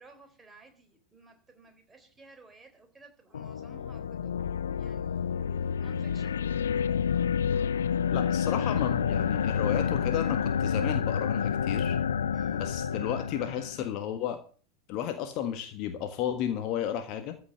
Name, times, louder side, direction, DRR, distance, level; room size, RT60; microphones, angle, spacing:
voice 1, 0.0-6.4 12.3-12.7, right 3 dB, 10° right, 4 dB, 3.7 m, -56 dB
sound 1, 3.3-13.9, left 7 dB, 65° left, 0.5 m, -29 dB
voice 2, 8.1-12.0 12.5-14.4 14.9-17.4, left 10 dB, 40° left, 8 dB, 1.5 m, -33 dB
14.5 x 5.8 x 8.3 m, 0.41 s
figure-of-eight pair, 90°, 0 cm